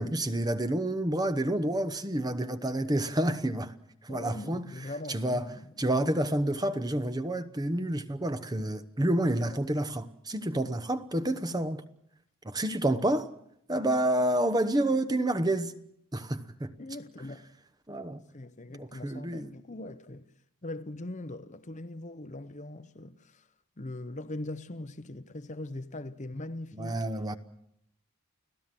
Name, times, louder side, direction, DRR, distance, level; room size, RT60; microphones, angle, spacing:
voice 1, 0.0-3.7 4.0-4.6 5.1-5.4 5.8-11.8 12.4-13.3 13.7-15.7 16.1-16.7 17.9-18.2 18.8-19.5 26.7-27.4, right 1 dB, 15° right, 1.0 m, -29 dB
voice 2, 4.1-5.8 8.6-8.7 9.5-9.6 16.8-17.5 18.3-20.3 20.6-23.5 23.8-27.0, left 2 dB, 35° left, 0.8 m, -41 dB
30.0 x 16.5 x 7.6 m
head